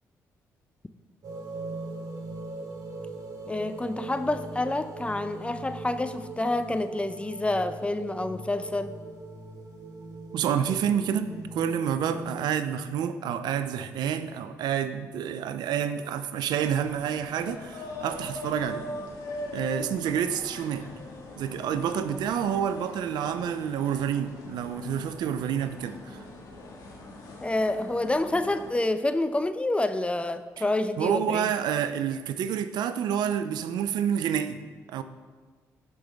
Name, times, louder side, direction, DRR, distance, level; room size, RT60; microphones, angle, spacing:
sound 1, 1.2-12.3, right 2 dB, 55° right, 1.7 m, -40 dB
voice 1, 3.4-8.9 22.1-22.2 27.4-31.5, left 2 dB, 15° left, 11 dB, 0.6 m, -28 dB
voice 2, 10.3-18.8 19.5-20.9 21.4-26.2 30.6-30.7 31.0-34.6 34.9-35.0, right 8 dB, 75° right, 11 dB, 0.5 m, -28 dB
sound 2, 16.6-28.7, left 1 dB, 70° left, 1.5 m, -41 dB
12.0 x 5.3 x 3.5 m, 1.4 s
supercardioid pair, 55°, 7 cm